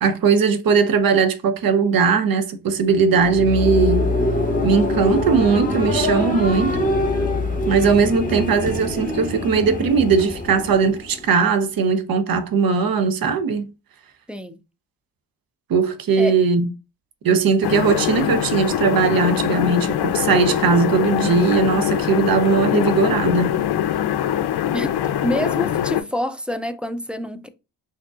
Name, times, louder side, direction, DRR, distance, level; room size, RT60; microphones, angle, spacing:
voice 1, 0.0-4.1 4.6-6.9 7.7-13.7 15.7-16.7 17.2-23.6, right 5 dB, 50° right, 0.7 m, -19 dB
sound 1, 2.9-11.5, left 1 dB, 15° left, 1.0 m, -24 dB
sound 2, 17.6-26.0, left 11 dB, 55° left, 0.6 m, -22 dB
voice 2, 25.2-27.5, equal, 5° right, 0.3 m, -27 dB
3.5 x 2.7 x 2.4 m
supercardioid pair, 50°, 46 cm